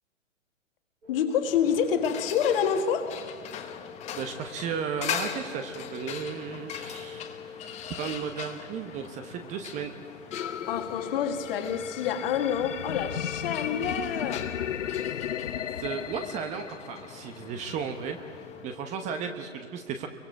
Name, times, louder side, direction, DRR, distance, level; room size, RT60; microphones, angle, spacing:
sound 1, 1.0-19.3, left 6 dB, 70° right, 3.4 m, -47 dB
voice 1, 1.1-3.2 10.7-14.5, left 7 dB, 45° left, 2.0 m, -27 dB
sound 2, 1.3-18.8, left 8 dB, 15° left, 1.2 m, -41 dB
voice 2, 4.1-7.7 8.0-9.9 15.8-18.2 18.6-20.1, right 7 dB, 20° right, 0.9 m, -35 dB
sound 3, 10.3-17.4, left 9 dB, 70° left, 0.8 m, -35 dB
29.5 x 23.5 x 4.6 m
figure-of-eight pair, 125°, 39 cm